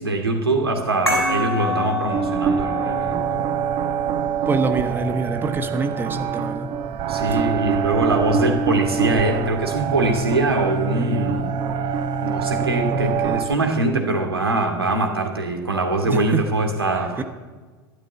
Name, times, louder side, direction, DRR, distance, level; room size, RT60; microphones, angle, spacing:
voice 1, 0.0-3.4 7.1-11.6 12.2-17.2, right 2 dB, 80° right, 4 dB, 2.4 m, -23 dB
sound 1, 1.1-6.1, left 1 dB, 90° left, 6.0 m, -29 dB
sound 2, 2.1-13.5, right 6 dB, 40° right, 1.1 m, -24 dB
voice 2, 4.5-6.7 7.2-7.4 16.0-16.4 17.2-17.3, right 3 dB, 15° right, 8 dB, 1.3 m, -25 dB
13.0 x 13.0 x 8.4 m, 1.4 s
figure-of-eight pair, 85°, 13 cm